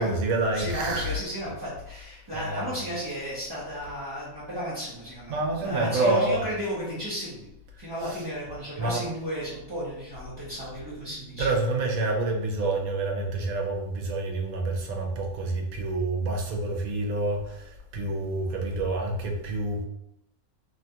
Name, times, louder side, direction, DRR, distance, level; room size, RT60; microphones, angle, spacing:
voice 1, 0.0-1.2 2.3-2.7 5.3-6.4 8.0-8.2 8.8-9.0 11.0-19.8, right 2 dB, 80° right, 1 dB, 1.1 m, -28 dB
voice 2, 0.5-7.5 7.8-11.5, equal, 30° right, -9 dB, 0.5 m, -34 dB
2.8 x 2.3 x 2.7 m, 0.84 s
omnidirectional pair, 1.5 m